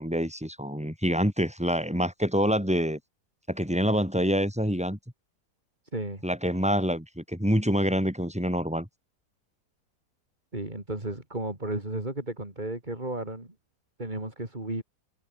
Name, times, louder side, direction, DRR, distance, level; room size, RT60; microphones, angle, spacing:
voice 1, 0.0-3.0 3.5-5.0 6.2-8.9, equal, 5° right, 6.5 m, -26 dB
voice 2, 5.9-6.2 10.5-13.5 14.0-14.8, right 2 dB, 25° right, 4.4 m, -33 dB
omnidirectional pair, 1.8 m